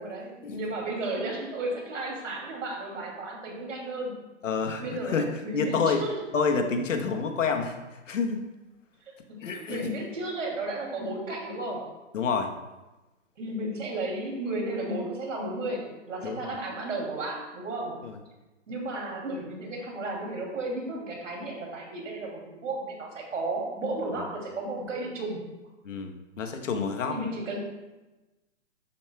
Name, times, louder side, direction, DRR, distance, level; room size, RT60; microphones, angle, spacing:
voice 1, 0.0-4.1 4.8-6.2 9.1-11.9 13.4-18.0 18.7-25.4 27.1-27.6, right 2 dB, 90° right, -1 dB, 2.8 m, -33 dB
voice 2, 4.4-5.3 5.5-6.0 6.3-7.8 8.1-8.4 9.4-9.9 12.1-12.5 16.2-16.5 18.0-18.1 25.8-27.2, left 5 dB, 90° left, 5 dB, 1.2 m, -28 dB
11.5 x 7.2 x 2.3 m, 1.1 s
hypercardioid pair, 170°, 37 cm